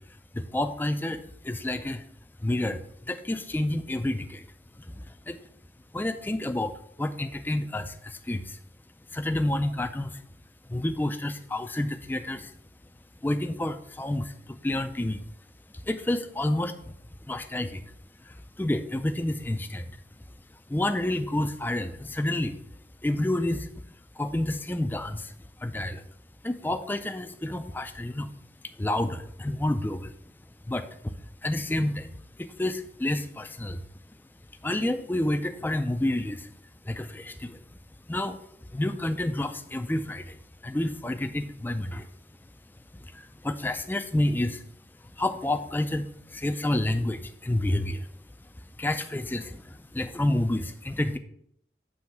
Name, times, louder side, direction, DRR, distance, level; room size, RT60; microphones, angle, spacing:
voice 1, 0.3-2.0 2.4-4.5 4.8-5.4 5.9-8.6 9.1-10.2 10.7-12.5 13.2-15.2 15.7-17.0 17.3-17.8 18.2-20.0 20.7-22.6 23.0-23.7 24.2-25.3 25.6-26.0 26.4-28.3 28.8-30.1 30.7-31.1 31.4-32.1 32.4-33.8 34.6-36.5 36.8-37.6 38.1-38.4 38.7-40.4 40.6-42.1 43.0-44.6 45.2-48.1 48.8-51.2, left 1 dB, 10° left, 8 dB, 0.3 m, -29 dB
7.7 x 3.1 x 5.7 m, 0.70 s
head